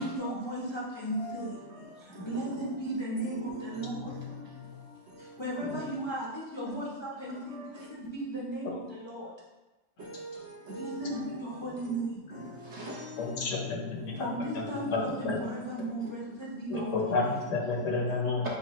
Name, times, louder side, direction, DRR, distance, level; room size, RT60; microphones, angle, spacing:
voice 1, 0.0-1.6 2.0-4.1 5.2-9.3 10.7-12.3 14.2-17.2, right 1 dB, 25° left, -6 dB, 0.6 m, -36 dB
voice 2, 3.3-5.4 7.5-7.7 10.0-11.3 11.8-11.9 12.4-14.2 16.0-16.1 17.0-17.1, left 1 dB, 60° right, -4 dB, 1.2 m, -40 dB
voice 3, 13.2-14.1 14.9-15.4 16.7-18.5, left 3 dB, 70° left, 0 dB, 1.2 m, -30 dB
7.0 x 2.4 x 3.1 m, 1.1 s
omnidirectional pair, 1.4 m